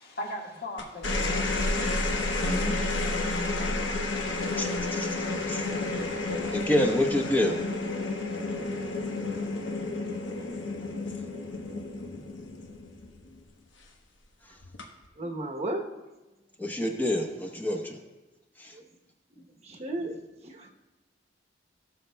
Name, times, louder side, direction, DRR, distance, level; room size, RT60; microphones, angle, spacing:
voice 1, 0.0-3.2, left 1 dB, 60° left, -1 dB, 1.7 m, -41 dB
sound 1, 0.8-13.4 14.6-15.1, left 2 dB, 85° left, 1.1 m, -31 dB
voice 2, 2.4-2.8 4.6-5.1 5.5-5.6 6.5-7.6 16.6-18.0 18.6-18.7, left 1 dB, 10° left, 1 dB, 0.9 m, -28 dB
voice 3, 15.2-15.9 18.7-18.9 19.3-20.7, right 1 dB, 35° right, 2 dB, 1.0 m, -35 dB
18.0 x 6.6 x 2.3 m, 1.1 s
head